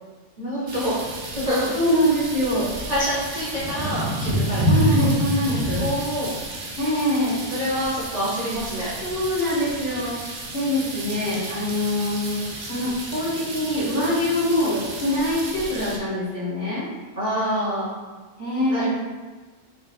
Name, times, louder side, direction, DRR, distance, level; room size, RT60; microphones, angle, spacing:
voice 1, 0.4-0.9 1.3-1.7 2.9-5.1 5.8-6.3 7.5-8.9 17.2-18.0 18.7-18.9, equal, 40° right, -9 dB, 0.7 m, -26 dB
sound 1, 0.7-16.0, right 1 dB, 85° right, 1.2 m, -29 dB
voice 2, 1.7-2.6 4.7-5.8 6.8-7.3 9.0-10.1 10.5-16.8 18.4-18.9, left 1 dB, 30° left, -9 dB, 1.4 m, -24 dB
4.7 x 3.3 x 2.4 m, 1.3 s
omnidirectional pair, 1.4 m